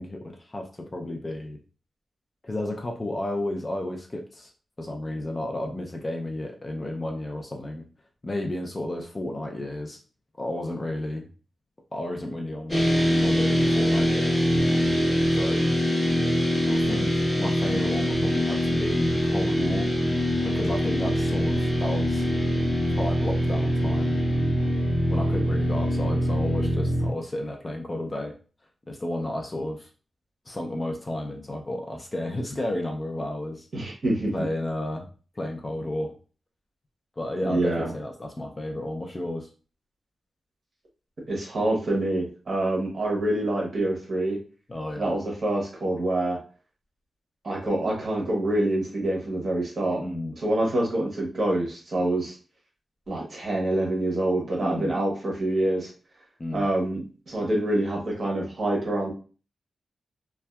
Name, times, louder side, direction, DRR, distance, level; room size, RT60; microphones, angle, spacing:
voice 1, 0.0-1.6 2.4-4.5 4.8-7.9 8.2-10.0 10.4-11.3 11.9-14.4 15.3-15.7 16.7-19.9 20.4-22.2 23.0-24.3 25.1-28.4 28.9-29.9 30.5-33.7 34.3-35.1 35.4-36.1 37.2-39.5 44.7-45.2 50.0-50.4 54.6-54.9 56.4-56.7, left 1 dB, 25° left, 2 dB, 0.4 m, -32 dB
sound 1, 12.7-27.1, equal, 10° left, 1.1 m, -23 dB
voice 2, 33.7-34.3 37.4-37.9 41.3-44.4 45.0-46.4 47.4-50.0 50.4-52.3 53.1-55.9 56.5-59.1, right 1 dB, 50° right, -2 dB, 1.0 m, -26 dB
2.6 x 2.2 x 2.2 m, 0.37 s
wide cardioid pair, 150°, 0 cm